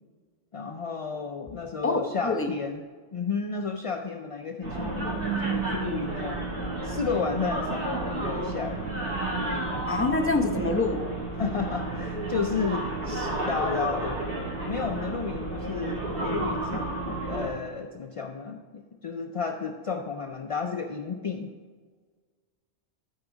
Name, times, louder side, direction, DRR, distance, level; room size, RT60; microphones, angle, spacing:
voice 1, 0.5-2.8 3.1-6.4 6.8-9.0 9.4-9.8 11.4-16.9 17.2-21.5, left 5 dB, 55° left, 3 dB, 0.4 m, -32 dB
voice 2, 1.8-2.5 9.9-11.0, left 3 dB, 15° left, 3 dB, 0.6 m, -26 dB
sound 1, 4.6-17.5, right 2 dB, 50° right, 2.5 m, -31 dB
14.0 x 4.8 x 3.9 m, 1.5 s
omnidirectional pair, 1.2 m